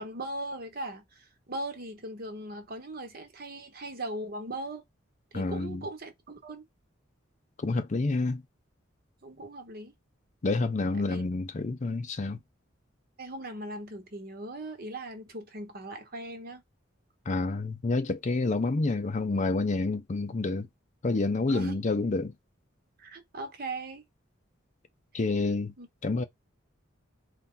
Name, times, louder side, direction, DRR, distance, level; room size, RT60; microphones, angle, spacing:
voice 1, 0.0-4.8 5.3-6.6 9.2-9.9 10.9-11.2 13.2-16.6 21.5-21.8 23.0-24.0 25.8-25.9, right 1 dB, 50° right, 1.2 m, -39 dB
voice 2, 5.3-5.8 7.6-8.4 10.4-12.4 17.3-20.7 21.0-22.3 25.1-25.7 26.0-26.2, left 3 dB, 40° left, 0.5 m, -28 dB
4.1 x 2.5 x 3.8 m
head